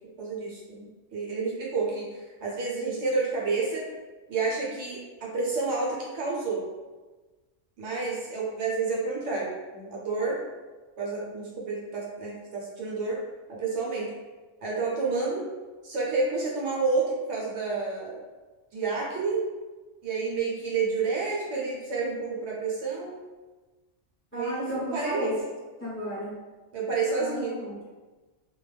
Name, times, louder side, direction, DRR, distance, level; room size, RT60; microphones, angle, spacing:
voice 1, 0.2-3.9 4.3-6.6 7.8-10.4 11.0-13.2 13.5-14.1 14.6-15.4 15.8-18.2 18.7-19.4 20.0-23.2 24.3-25.3 26.7-27.6, right 4 dB, 70° right, -4 dB, 0.9 m, -29 dB
voice 2, 24.3-25.4 25.8-26.3 27.2-27.9, equal, 15° left, -9 dB, 0.7 m, -33 dB
2.2 x 2.1 x 3.2 m, 1.2 s
omnidirectional pair, 1.3 m